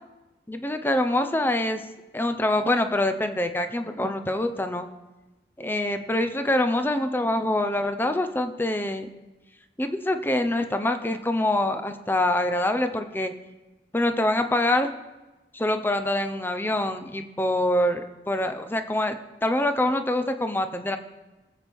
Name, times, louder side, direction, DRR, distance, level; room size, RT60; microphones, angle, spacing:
voice 1, 0.5-1.8 2.1-4.9 5.6-9.1 9.8-13.3 13.9-14.9 15.5-21.0, left 1 dB, 10° left, 7 dB, 0.7 m, -25 dB
21.5 x 7.9 x 3.6 m, 1.1 s
head